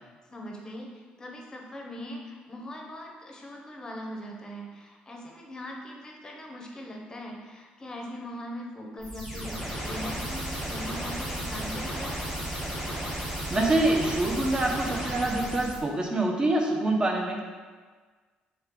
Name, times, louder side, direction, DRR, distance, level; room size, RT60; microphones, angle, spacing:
voice 1, 0.3-12.4, equal, 20° left, 0 dB, 0.7 m, -40 dB
sound 1, 9.0-15.8, right 1 dB, 10° right, 1.3 m, -34 dB
voice 2, 13.5-17.4, right 2 dB, 25° right, 1 dB, 0.6 m, -25 dB
3.2 x 3.1 x 3.6 m, 1.5 s
cardioid pair, 105°, 3 cm